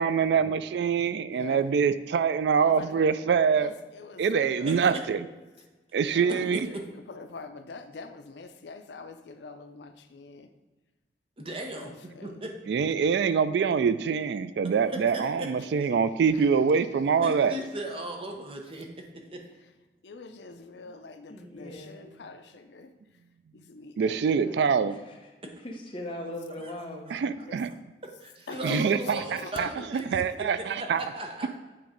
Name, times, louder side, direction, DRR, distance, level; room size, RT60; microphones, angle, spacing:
voice 1, 0.0-3.7 4.2-5.2 5.9-6.7 12.7-17.5 24.0-25.0 27.1-27.7 28.6-31.0, right 6 dB, 70° right, 14 dB, 0.3 m, -25 dB
voice 2, 1.3-1.6 2.6-3.1 3.5-4.9 6.1-10.5 11.7-12.3 15.9-16.0 20.0-22.9 23.5-24.6 27.5-27.6 28.5-29.7 30.1-30.2, left 3 dB, 75° left, 8 dB, 0.5 m, -44 dB
voice 3, 11.4-11.9 12.2-12.5 15.1-15.5 17.2-18.9 19.3-19.4 26.6-26.7 28.2-30.2 30.6-31.6, right 1 dB, 30° right, 2 dB, 0.8 m, -36 dB
voice 4, 21.3-22.1 24.9-25.2 25.5-27.1, left 1 dB, 30° left, 0 dB, 1.0 m, -40 dB
8.5 x 3.1 x 5.0 m, 1.2 s
head